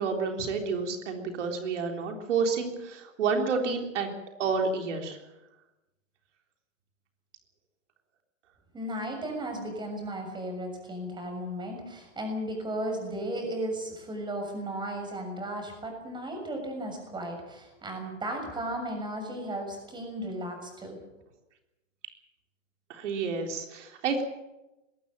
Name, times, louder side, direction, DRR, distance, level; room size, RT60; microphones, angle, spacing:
voice 1, 0.0-4.1 4.4-5.2 22.9-24.2, right 5 dB, 70° right, 3 dB, 3.8 m, -29 dB
voice 2, 8.7-21.0, right 1 dB, 10° right, 4 dB, 6.7 m, -35 dB
21.5 x 15.5 x 8.9 m, 0.98 s
hypercardioid pair, 140°, 37 cm